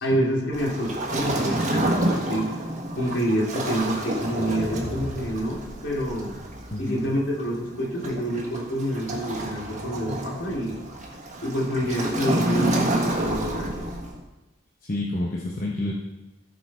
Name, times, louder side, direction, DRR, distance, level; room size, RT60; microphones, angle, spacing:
voice 1, 0.0-2.5 3.0-6.4 6.8-10.8 11.4-13.9, equal, 65° left, -4 dB, 3.1 m, -27 dB
Waves surf, 0.5-14.2, right 1 dB, 35° right, 1.5 m, -29 dB
voice 2, 14.9-15.9, left 1 dB, 45° left, -3 dB, 1.0 m, -28 dB
15.0 x 5.3 x 4.4 m, 1.0 s
head